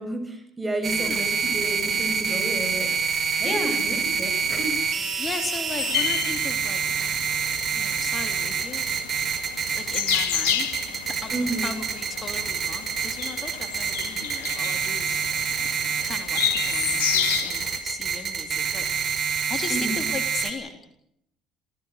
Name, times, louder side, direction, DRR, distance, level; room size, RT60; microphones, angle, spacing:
voice 1, 0.0-3.0 3.4-4.8 11.3-11.8 19.7-20.0, right 1 dB, 15° right, 6 dB, 7.2 m, -31 dB
sound 1, 0.8-20.5, right 6 dB, 45° right, 5.2 m, -27 dB
voice 2, 3.4-3.8 5.2-7.2 7.7-8.9 9.8-15.2 16.0-18.9 19.5-20.8, left 4 dB, 35° left, 6 dB, 3.6 m, -37 dB
sound 2, 5.7-17.8, left 11 dB, 80° left, 2.0 m, -31 dB
27.0 x 18.5 x 6.7 m, 0.75 s
hypercardioid pair, 65°, 0 cm